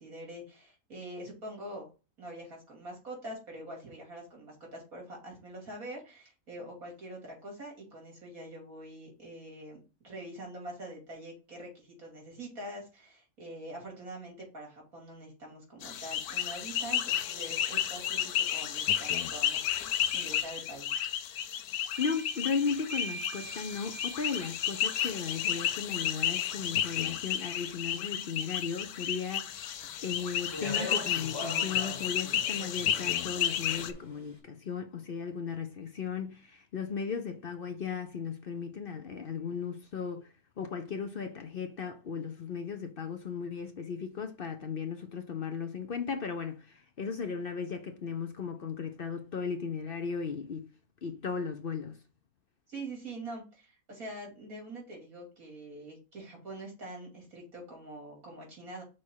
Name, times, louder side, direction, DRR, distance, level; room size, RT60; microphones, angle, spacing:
voice 1, 0.0-1.9 2.2-9.8 10.0-21.0 52.7-58.8, right 1 dB, 70° right, 3.4 m, -44 dB
sound 1, 15.8-33.9, left 10 dB, 85° left, 1.2 m, -32 dB
sound 2, 21.9-26.4, right 5 dB, 35° right, 2.2 m, -47 dB
voice 2, 22.0-50.7 51.0-52.0, left 6 dB, 50° left, 0.7 m, -36 dB
Speech, 29.8-34.2, left 2 dB, 15° left, 1.6 m, -41 dB
6.2 x 4.2 x 4.6 m
omnidirectional pair, 1.5 m